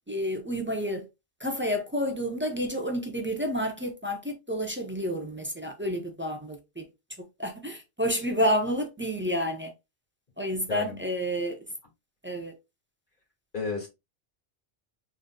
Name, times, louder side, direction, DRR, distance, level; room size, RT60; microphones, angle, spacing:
voice 1, 0.1-1.0 1.4-6.9 7.4-9.7 10.4-11.6 12.2-12.5, equal, 15° right, 0.5 m, -30 dB
voice 2, 13.5-13.9, left 4 dB, 45° left, 2.2 m, -32 dB
3.9 x 3.9 x 2.2 m
omnidirectional pair, 1.1 m